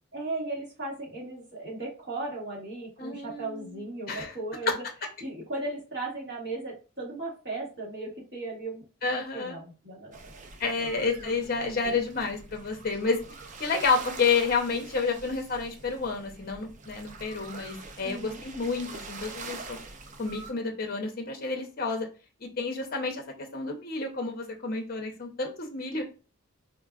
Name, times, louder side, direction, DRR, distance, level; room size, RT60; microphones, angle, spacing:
voice 1, 0.1-4.8 5.2-8.8 9.1-10.4 10.8-11.3 11.8-12.0 18.0-18.4, right 2 dB, 55° right, -5 dB, 1.6 m, -37 dB
voice 2, 3.0-3.8 4.1-4.3 9.0-9.6 10.6-13.2 13.6-19.8 20.2-22.1 22.4-26.0, left 4 dB, 45° left, 4 dB, 0.6 m, -30 dB
sound 1, 10.1-20.5, right 3 dB, 35° right, 0.3 m, -45 dB
3.9 x 2.3 x 2.3 m, 0.33 s
head